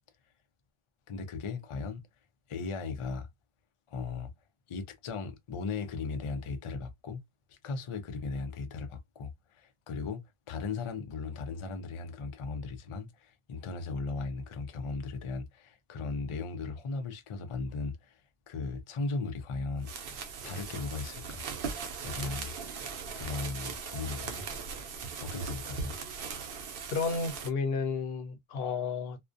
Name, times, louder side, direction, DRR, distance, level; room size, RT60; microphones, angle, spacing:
voice 1, 1.1-2.0 2.5-3.3 3.9-4.3 4.7-7.2 7.5-10.2 10.5-18.2 18.5-19.9 20.4-21.4 22.0-22.5 23.2-24.5 25.2-26.0, left 4 dB, 50° left, 0.3 m, -37 dB
sound 1, 19.8-27.5, right 5 dB, 70° right, 0.7 m, -39 dB
voice 2, 26.9-29.2, left 5 dB, 75° left, 0.8 m, -32 dB
2.4 x 2.1 x 2.4 m
omnidirectional pair, 1.0 m